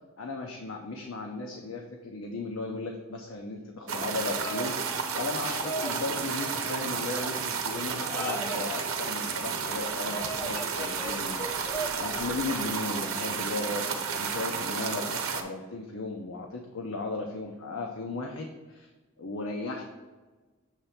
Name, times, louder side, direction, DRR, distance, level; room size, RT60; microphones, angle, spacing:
voice 1, 0.2-4.7 5.1-11.4 12.0-18.9 19.2-19.8, left 3 dB, 70° left, 1 dB, 0.7 m, -36 dB
sound 1, 3.9-15.4, right 6 dB, 75° right, 0.8 m, -32 dB
Bird vocalization bird call bird song, 4.1-12.1, right 1 dB, 10° left, 0.4 m, -40 dB
7.4 x 3.3 x 5.6 m, 1.3 s
head